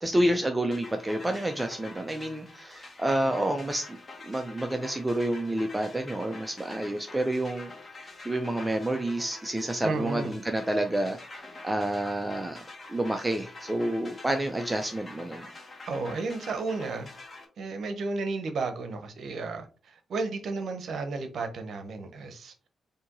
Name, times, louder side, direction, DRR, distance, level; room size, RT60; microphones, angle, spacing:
voice 1, 0.0-4.0 4.2-7.7 8.0-11.2 11.6-12.6 12.9-15.5, right 1 dB, 15° right, 0.5 m, -29 dB
sound 1, 0.7-17.5, left 2 dB, 35° left, 1.4 m, -46 dB
voice 2, 9.8-10.3 15.9-17.1 17.6-22.5, right 3 dB, 70° right, 0.8 m, -33 dB
4.3 x 2.8 x 3.9 m
cardioid pair, 65°, 0 cm